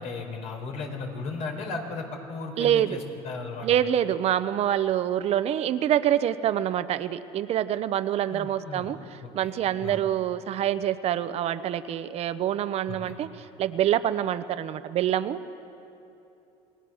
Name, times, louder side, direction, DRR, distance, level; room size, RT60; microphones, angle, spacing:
voice 1, 0.0-3.8 8.3-8.9 9.2-9.5 9.8-10.0 12.9-13.1, left 3 dB, 60° left, 2 dB, 4.4 m, -36 dB
voice 2, 2.6-3.0 3.6-15.4, right 11 dB, 55° right, 12 dB, 0.8 m, -26 dB
28.0 x 18.5 x 6.4 m, 2.8 s
supercardioid pair, 105°, 13 cm